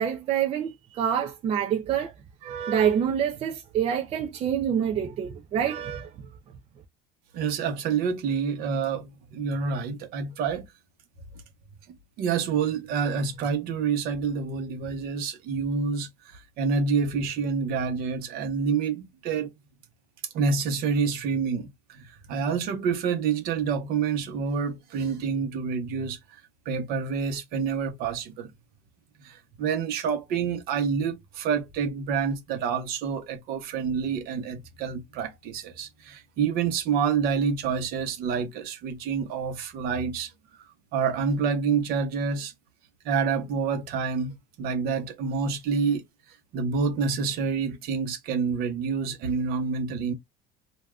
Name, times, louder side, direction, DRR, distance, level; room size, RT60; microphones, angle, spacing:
voice 1, 0.0-2.1 2.4-6.1, right 8 dB, 35° right, 0.4 m, -26 dB
voice 2, 7.3-10.7 12.2-19.5 20.3-26.2 26.6-28.5 29.2-40.3 40.6-42.5 43.0-46.0 46.5-50.1, right 5 dB, 60° right, 0.9 m, -28 dB
2.5 x 2.3 x 3.3 m
cardioid pair, 155°, 17 cm